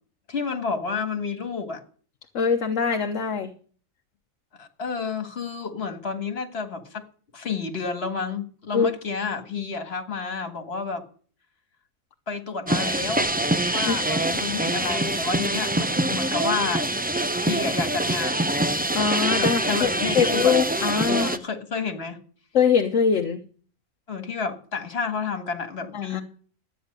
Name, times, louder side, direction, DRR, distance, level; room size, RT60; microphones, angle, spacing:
voice 1, 0.3-1.8 4.6-7.1 7.3-11.0 12.3-13.3 13.7-16.8 17.4-18.5 19.4-20.6 21.0-22.2 24.1-26.2, left 5 dB, 50° left, 2.0 m, -30 dB
voice 2, 2.3-3.5 8.7-8.9 13.9-14.0 18.9-19.9 20.1-21.3 22.5-23.4 25.9-26.2, left 6 dB, 70° left, 1.3 m, -22 dB
sound 1, 12.7-21.4, right 1 dB, 10° right, 0.4 m, -25 dB
13.0 x 9.1 x 6.6 m
omnidirectional pair, 1.4 m